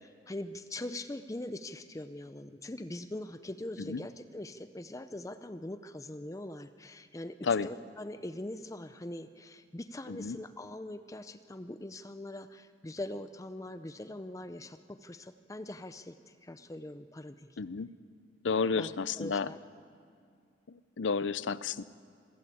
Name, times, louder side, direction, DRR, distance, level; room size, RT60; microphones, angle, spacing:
voice 1, 0.3-17.6 18.7-19.6, left 1 dB, 15° left, 11 dB, 0.5 m, -42 dB
voice 2, 17.6-17.9 18.4-19.5 21.0-21.8, left 5 dB, 75° left, 16 dB, 0.6 m, -31 dB
26.5 x 15.0 x 8.6 m, 2.3 s
head